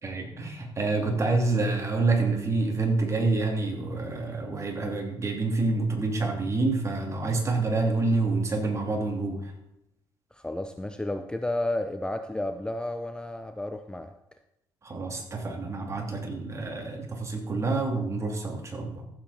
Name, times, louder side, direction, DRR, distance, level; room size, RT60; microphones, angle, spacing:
voice 1, 0.0-9.4 14.8-19.0, right 3 dB, 30° right, 2 dB, 3.0 m, -27 dB
voice 2, 10.3-14.1, left 1 dB, 10° left, 8 dB, 0.7 m, -32 dB
14.5 x 7.6 x 4.3 m, 0.84 s
cardioid pair, 85°, 9 cm